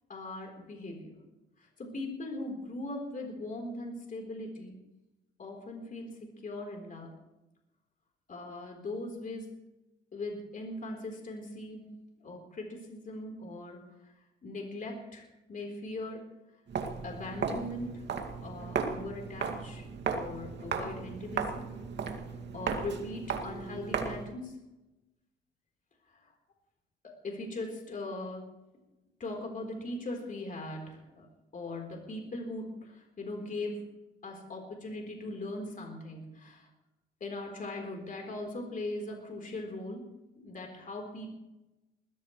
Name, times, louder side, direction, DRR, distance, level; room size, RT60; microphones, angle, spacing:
voice 1, 0.1-1.2 1.6-4.8 5.4-7.1 8.3-9.5 10.1-11.9 12.2-14.1 14.4-16.2 17.0-18.0 18.4-19.9 20.1-21.7 22.2-24.6 26.1-26.3 27.0-28.5 29.2-31.3 31.5-33.8 34.2-36.7 37.2-40.1 40.4-41.3, left 2 dB, 40° left, 1 dB, 4.0 m, -40 dB
Walk footsteps, 16.7-24.3, right 5 dB, 60° right, 2.2 m, -36 dB
20.5 x 15.5 x 3.2 m, 0.96 s
cardioid pair, 90°, 20 cm